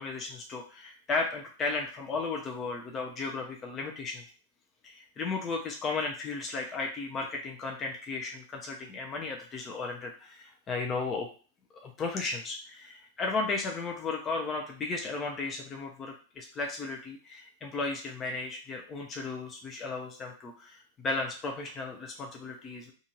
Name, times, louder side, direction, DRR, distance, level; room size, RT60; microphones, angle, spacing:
voice 1, 0.0-4.2 4.8-11.3 11.8-22.9, left 3 dB, 30° left, 2 dB, 0.5 m, -35 dB
2.6 x 2.5 x 2.9 m, 0.38 s
figure-of-eight pair, 95°, 0 cm